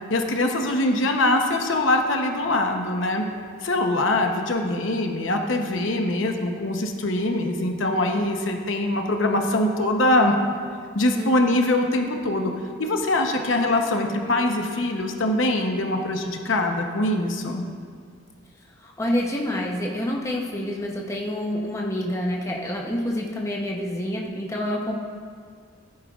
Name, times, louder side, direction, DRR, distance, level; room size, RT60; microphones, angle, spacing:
voice 1, 0.1-3.2 3.6-10.3 10.9-12.5 12.8-17.6, left 1 dB, 65° left, 3 dB, 0.9 m, -23 dB
voice 2, 11.1-11.6 18.8-25.0, left 1 dB, 15° left, -1 dB, 0.8 m, -28 dB
15.0 x 9.6 x 2.4 m, 2.1 s
head